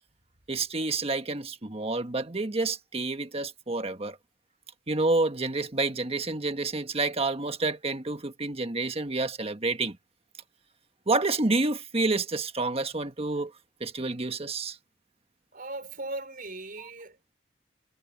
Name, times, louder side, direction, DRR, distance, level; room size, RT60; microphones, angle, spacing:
voice 1, 0.5-4.2 4.9-10.0 11.1-13.5 13.8-14.8 16.8-16.9, right 3 dB, 30° right, 1.4 m, -29 dB
voice 2, 15.5-17.3, right 2 dB, 50° right, 5.2 m, -38 dB
head